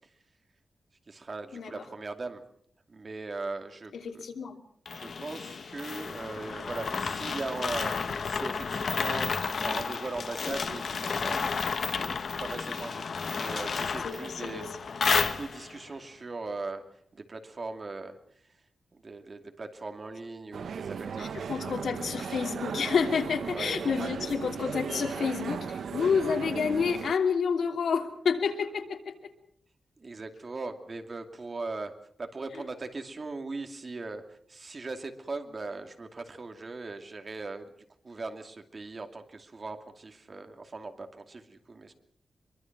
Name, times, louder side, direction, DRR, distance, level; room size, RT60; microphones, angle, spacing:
voice 1, 1.1-2.4 2.9-4.2 4.9-11.5 11.8-14.7 15.3-16.8 17.1-18.2 18.9-21.9 23.5-23.8 30.0-31.9 32.2-37.7 38.0-41.9, right 3 dB, 40° right, 6 dB, 2.6 m, -39 dB
voice 2, 3.9-4.6 14.0-14.7 21.2-29.3, left 6 dB, 90° left, 4 dB, 2.8 m, -29 dB
sound 1, 4.9-15.8, left 5 dB, 60° left, 1.5 m, -32 dB
sound 2, 20.5-27.2, right 6 dB, 85° right, 0.9 m, -36 dB
24.0 x 23.5 x 6.0 m, 0.65 s
wide cardioid pair, 120°, 0 cm